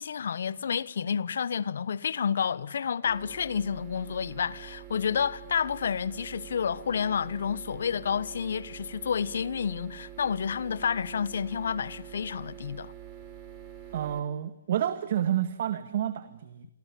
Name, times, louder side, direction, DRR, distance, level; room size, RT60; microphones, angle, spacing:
voice 1, 0.0-12.9, left 7 dB, 70° left, 1.3 m, -30 dB
sound 1, 3.0-14.2, right 12 dB, 25° right, 6.4 m, -46 dB
voice 2, 13.9-16.7, right 10 dB, 50° right, 1.7 m, -29 dB
29.0 x 23.5 x 8.6 m
hypercardioid pair, 155°, 0 cm